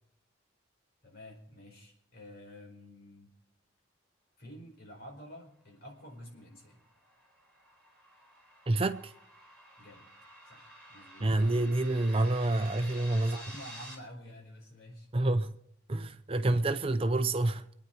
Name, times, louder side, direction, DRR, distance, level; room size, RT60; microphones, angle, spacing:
voice 1, 1.0-3.3 4.4-6.8 9.8-10.1 10.4-11.3 12.8-15.1, equal, 55° left, 4.6 m, -49 dB
sound 1, 6.2-13.9, right 1 dB, 5° left, 4.0 m, -51 dB
voice 2, 8.7-9.1 11.2-13.4 15.1-15.6 15.9-17.6, right 2 dB, 30° right, 0.6 m, -28 dB
26.0 x 9.5 x 4.5 m
head